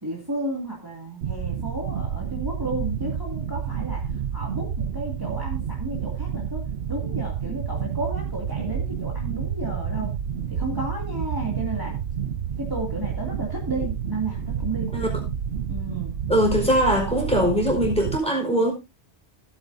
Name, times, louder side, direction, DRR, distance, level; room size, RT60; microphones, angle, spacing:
voice 1, 0.0-6.6 6.9-10.1 10.5-12.0 12.6-15.2 15.7-16.1, right 2 dB, 20° right, 2.4 m, -32 dB
sound 1, 1.2-18.2, right 8 dB, 70° right, 1.0 m, -29 dB
voice 2, 16.3-18.7, equal, 5° left, 4.4 m, -21 dB
17.0 x 8.9 x 2.7 m
omnidirectional pair, 1.1 m